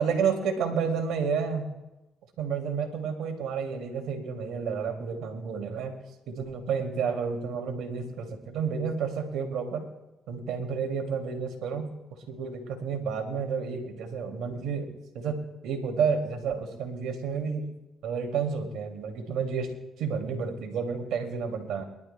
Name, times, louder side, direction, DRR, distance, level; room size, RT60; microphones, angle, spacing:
voice 1, 0.0-1.7 2.4-6.0 6.3-9.9 10.3-11.9 12.3-14.9 15.1-15.4 15.6-17.7 18.0-19.7 20.0-21.8, right 6 dB, 80° right, 3 dB, 2.3 m, -30 dB
23.5 x 12.0 x 2.2 m, 1.0 s
supercardioid pair, 50°, 0 cm